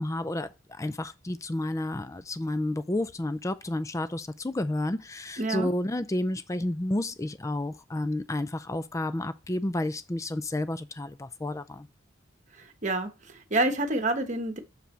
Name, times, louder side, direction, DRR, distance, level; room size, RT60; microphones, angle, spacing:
voice 1, 0.0-11.9, left 1 dB, 15° left, 0.4 m, -31 dB
voice 2, 5.4-5.7 12.6-14.6, right 2 dB, 35° right, 1.2 m, -28 dB
6.8 x 4.8 x 4.4 m
head